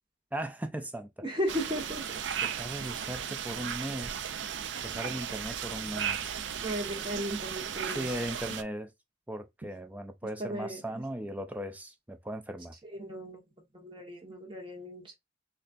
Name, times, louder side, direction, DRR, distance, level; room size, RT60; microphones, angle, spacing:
voice 1, 0.3-1.1 2.4-4.2 4.8-6.4 7.8-8.9 9.3-12.7, right 1 dB, 10° right, 0.3 m, -38 dB
voice 2, 1.2-2.1 6.6-8.2 10.4-10.8 12.9-13.4 13.8-15.2, equal, 25° right, 1.1 m, -35 dB
sound 1, 1.5-8.6, right 8 dB, 75° right, 0.4 m, -36 dB
4.2 x 2.4 x 2.5 m
head